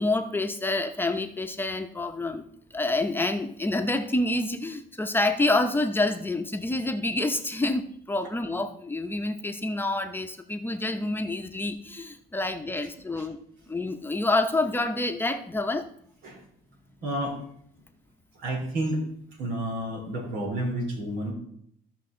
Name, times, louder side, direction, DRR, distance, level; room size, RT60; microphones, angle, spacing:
voice 1, 0.0-2.5 2.7-13.4 13.7-15.9, left 2 dB, 10° left, 6 dB, 0.8 m, -27 dB
voice 2, 17.0-17.4 18.3-19.1 19.4-21.3, right 1 dB, 85° right, 1 dB, 3.7 m, -30 dB
15.0 x 5.5 x 3.8 m, 0.68 s
cardioid pair, 110°, 17 cm